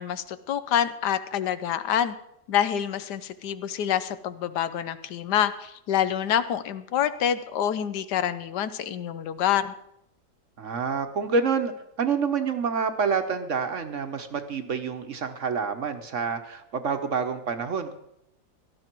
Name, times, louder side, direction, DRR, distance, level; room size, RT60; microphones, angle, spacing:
voice 1, 0.0-2.1 2.5-9.7, left 10 dB, 80° left, 13 dB, 1.3 m, -27 dB
voice 2, 10.6-11.7 12.0-17.9, right 5 dB, 50° right, 8 dB, 1.2 m, -27 dB
17.5 x 13.0 x 4.5 m, 0.79 s
omnidirectional pair, 1.8 m